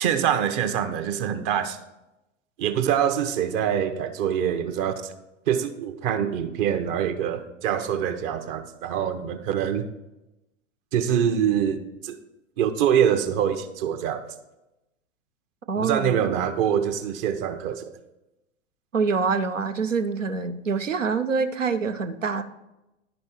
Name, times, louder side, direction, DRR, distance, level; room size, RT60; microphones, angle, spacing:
voice 1, 0.0-1.8 2.6-5.1 5.5-9.9 10.9-12.1 12.6-14.2 15.8-17.9, right 9 dB, 45° right, 0.9 m, -25 dB
voice 2, 15.7-16.2 18.9-22.4, right 5 dB, 90° right, 0.7 m, -25 dB
11.0 x 5.4 x 4.4 m
figure-of-eight pair, 95°, 37 cm